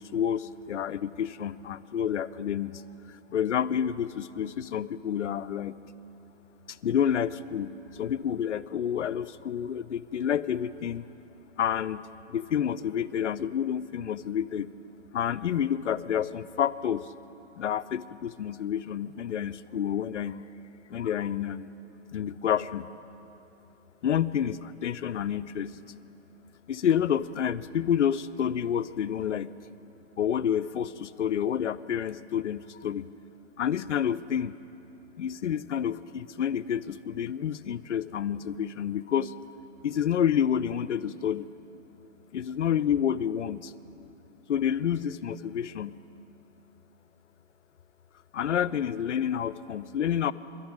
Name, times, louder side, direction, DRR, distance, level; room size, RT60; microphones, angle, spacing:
voice 1, 0.0-2.8 3.3-5.8 6.7-11.1 11.6-12.0 12.3-14.7 15.1-17.1 17.6-20.5 20.9-21.7 22.1-22.9 24.0-25.8 26.7-29.5 30.2-33.1 33.6-34.5 35.2-39.3 39.8-41.5 42.3-43.7 44.5-46.0 48.3-50.3, left 9 dB, 80° left, 14 dB, 0.5 m, -29 dB
11.5 x 8.9 x 9.4 m, 3.0 s
hypercardioid pair, 150°, 35 cm